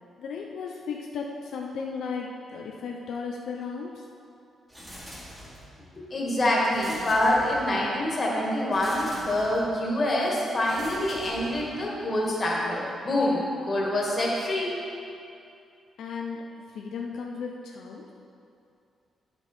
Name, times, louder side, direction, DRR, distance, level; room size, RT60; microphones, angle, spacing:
voice 1, 0.2-4.0 16.0-16.4 16.7-18.1, left 5 dB, 70° left, 0 dB, 0.7 m, -35 dB
sound 1, 4.7-5.8 6.7-7.9 8.7-9.7 10.6-11.9, equal, 15° right, 1.9 m, -44 dB
voice 2, 5.9-14.7, left 1 dB, 25° left, -4 dB, 1.9 m, -26 dB
10.0 x 7.8 x 4.4 m, 2.5 s
wide cardioid pair, 165°, 0 cm